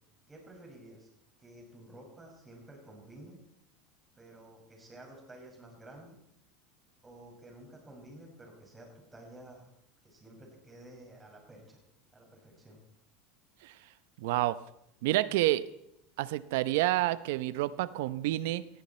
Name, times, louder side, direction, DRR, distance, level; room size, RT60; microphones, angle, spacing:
voice 1, 0.3-1.1 1.4-3.4 4.1-6.1 7.0-9.7 10.0-11.8 12.1-12.8, right 1 dB, 15° right, 0 dB, 6.0 m, -52 dB
voice 2, 14.2-14.6 15.0-15.6 16.2-18.7, right 16 dB, 75° right, 16 dB, 0.7 m, -29 dB
19.0 x 14.5 x 4.4 m, 0.81 s
supercardioid pair, 125°, 0 cm